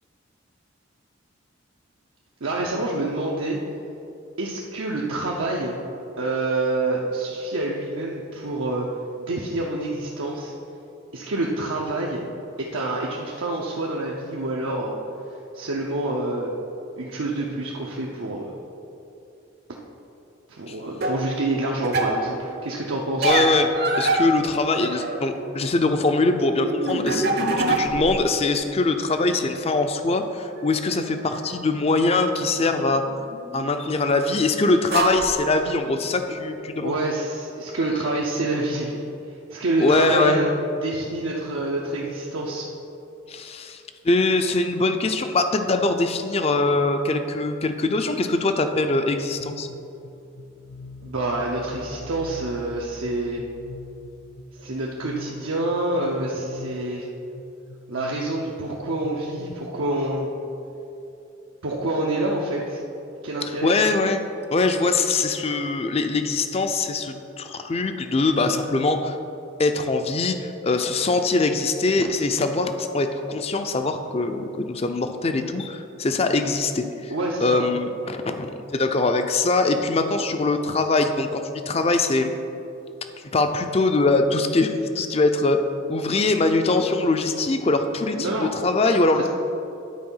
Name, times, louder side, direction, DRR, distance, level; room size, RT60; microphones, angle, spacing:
voice 1, 2.4-3.6 4.4-5.8 6.2-8.9 9.2-10.5 11.1-12.2 12.6-15.0 15.5-16.5 17.0-18.5 20.5-23.3 36.8-39.0 39.3-40.5 40.8-42.7 51.0-53.4 54.5-57.1 57.9-60.3 61.6-62.8 63.2-63.7 77.1-77.6 88.2-88.5 89.1-89.3, right 2 dB, 80° right, -3 dB, 0.7 m, -27 dB
sound 1, 21.0-21.2 21.8-22.2 23.2-25.5 25.8-28.2 28.5-29.4 30.6-30.7 32.2-33.9 34.5-34.6 34.9-35.3 36.3-36.4, right 2 dB, 50° right, 0.8 m, -26 dB
voice 2, 23.2-27.3 27.7-33.0 33.5-37.0 39.8-40.4 43.3-49.7 63.6-64.2 64.5-69.2 69.6-77.1 77.4-82.3 83.3-85.6 85.9-89.3, left 3 dB, 30° left, 8 dB, 0.4 m, -22 dB
sound 2, 49.4-59.5, left 1 dB, 85° left, 0.5 m, -43 dB
10.5 x 4.4 x 5.5 m, 2.8 s
head